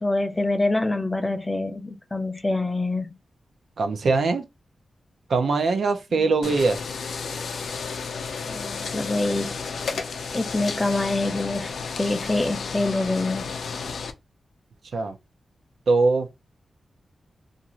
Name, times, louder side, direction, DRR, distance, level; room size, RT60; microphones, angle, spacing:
voice 1, 0.0-3.1 8.5-9.6 9.9-10.0 10.3-11.7 12.0-13.5, left 2 dB, 15° left, 0.4 m, -25 dB
voice 2, 3.8-4.4 5.3-6.8 14.9-15.2 15.9-16.3, right 3 dB, 70° right, 0.5 m, -21 dB
sound 1, 6.4-14.1, left 5 dB, 80° left, 0.4 m, -32 dB
2.5 x 2.4 x 2.8 m
wide cardioid pair, 135°, 0 cm